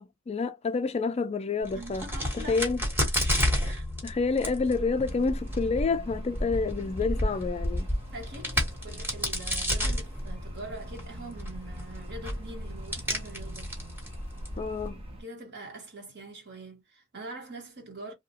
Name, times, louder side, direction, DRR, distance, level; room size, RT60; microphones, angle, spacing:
voice 1, 0.0-2.1 2.4-2.8 3.6-3.7 4.0-7.9 14.6-15.0, left 4 dB, 30° left, 0.3 m, -29 dB
Crack, 1.6-14.9, equal, 10° right, 1.2 m, -32 dB
voice 2, 1.7-2.7 3.6-3.9 8.1-13.7 15.2-18.1, right 2 dB, 55° right, 1.3 m, -43 dB
sound 1, 4.7-15.2, equal, 25° right, 0.7 m, -43 dB
2.7 x 2.5 x 2.7 m
head